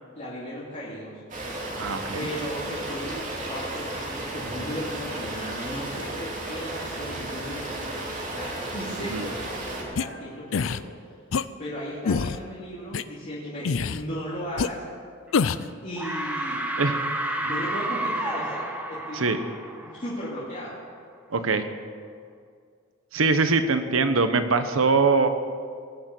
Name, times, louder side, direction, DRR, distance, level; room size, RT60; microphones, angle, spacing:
voice 1, 0.1-1.2 2.1-10.8 11.6-14.8 15.8-16.6 17.3-19.4 19.8-20.8, equal, 40° left, -8 dB, 2.6 m, -36 dB
sound 1, 1.3-9.8, right 2 dB, 40° right, 2.9 m, -34 dB
voice 2, 1.8-2.3 9.1-9.3 16.8-17.0 17.5-17.6 19.1-19.4 21.3-21.7 23.1-25.3, right 4 dB, 85° right, 9 dB, 1.0 m, -22 dB
sound 2, 10.0-10.1 10.5-10.8 11.3-11.4 12.0-12.4 12.9-13.0 13.6-14.0 14.6-14.7 15.3-15.7, left 5 dB, 75° left, 0.5 m, -25 dB
sound 3, 15.3-15.7 16.0-20.5, right 1 dB, 5° right, 1.0 m, -31 dB
19.5 x 6.9 x 7.8 m, 2.1 s
head